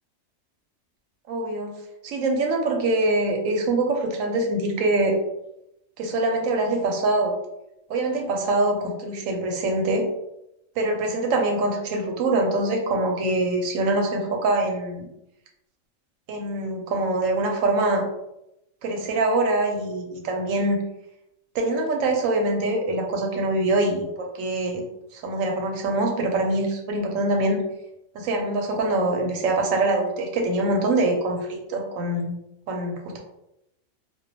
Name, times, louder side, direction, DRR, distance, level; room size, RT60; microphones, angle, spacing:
voice 1, 1.3-1.7 2.0-5.1 6.0-7.3 7.9-10.1 10.8-15.1 16.3-18.0 18.8-20.8 21.5-24.8 25.1-27.6 28.1-32.3 32.7-33.2, right 2 dB, 80° right, 2 dB, 1.0 m, -24 dB
2.2 x 2.2 x 2.6 m, 0.86 s
omnidirectional pair, 1.4 m